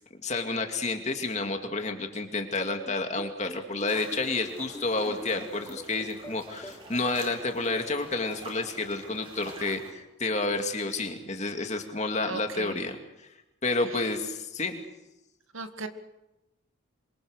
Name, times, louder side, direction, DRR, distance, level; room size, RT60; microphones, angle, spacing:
voice 1, 0.2-13.0 13.6-14.8, left 3 dB, 35° left, 5 dB, 2.4 m, -30 dB
sound 1, 2.9-6.7, equal, 10° left, 1.4 m, -43 dB
sound 2, 3.9-9.9, right 2 dB, 25° right, 3.6 m, -45 dB
voice 2, 12.3-12.8 15.5-15.9, right 3 dB, 75° right, 8 dB, 2.0 m, -37 dB
27.0 x 23.5 x 6.5 m, 0.94 s
head